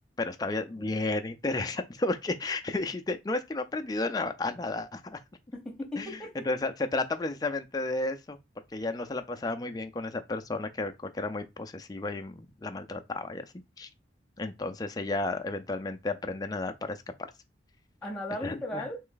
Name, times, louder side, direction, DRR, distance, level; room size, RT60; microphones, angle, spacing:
voice 1, 0.2-5.2 6.0-6.1 6.5-8.4 8.7-13.5 13.8-13.9 14.4-17.1 18.4-18.8, left 2 dB, 20° left, 0.4 m, -32 dB
voice 2, 0.7-1.1 5.5-6.5 18.0-19.0, left 1 dB, 5° left, 1.0 m, -37 dB
3.4 x 3.1 x 3.8 m
head